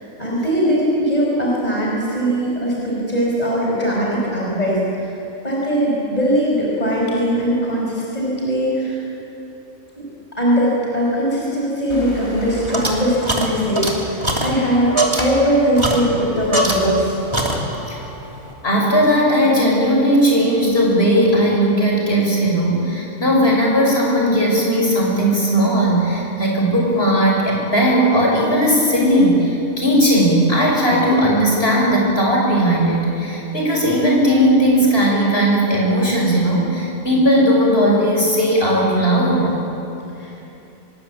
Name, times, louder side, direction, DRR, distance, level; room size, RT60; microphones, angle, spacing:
voice 1, 0.2-5.1 5.4-9.0 10.0-10.1 10.4-17.2 40.2-40.5, equal, 30° left, -4 dB, 5.5 m, -20 dB
sound 1, 11.9-17.1 17.3-18.0, right 1 dB, 20° right, 3.2 m, -23 dB
voice 2, 18.6-39.6, equal, 45° left, -3 dB, 6.4 m, -17 dB
25.0 x 22.5 x 8.5 m, 3.0 s
omnidirectional pair, 1.4 m